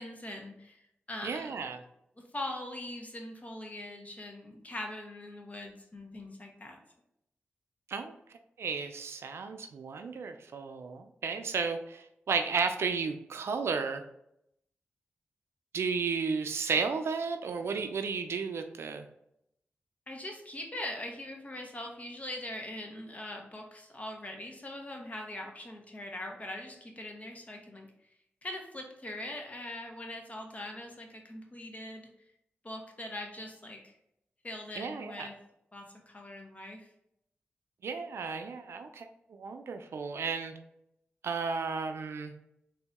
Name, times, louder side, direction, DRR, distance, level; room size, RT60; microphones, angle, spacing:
voice 1, 0.0-1.7 2.2-6.8 20.1-27.9 28.4-32.1 32.6-33.9 34.4-35.3 35.7-36.9, left 1 dB, 35° left, 2 dB, 1.1 m, -42 dB
voice 2, 1.2-1.8 7.9-8.1 8.6-14.0 15.7-19.1 34.8-35.3 37.8-40.5 41.2-42.3, right 5 dB, 80° right, 7 dB, 0.4 m, -33 dB
3.9 x 2.7 x 3.5 m, 0.78 s
cardioid pair, 45°, 4 cm